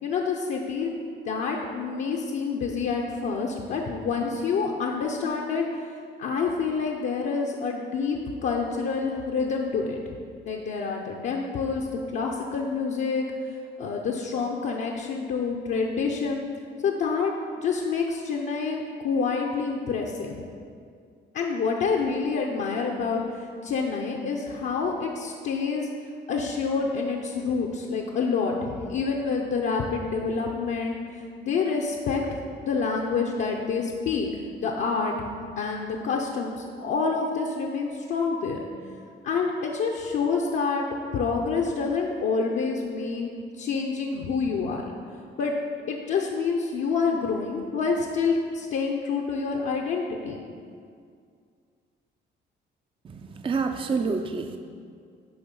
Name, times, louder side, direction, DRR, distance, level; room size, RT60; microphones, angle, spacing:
voice 1, 0.0-0.9 1.2-10.0 10.5-16.5 16.8-17.3 17.6-20.3 21.3-25.9 26.3-34.3 34.6-35.3 35.6-38.6 39.2-40.9 41.1-44.9 45.4-45.5 45.9-50.4, left 5 dB, 70° left, -1 dB, 0.8 m, -27 dB
voice 2, 53.0-54.6, right 4 dB, 25° right, 6 dB, 0.4 m, -28 dB
10.5 x 3.6 x 5.4 m, 2.2 s
cardioid pair, 90°, 20 cm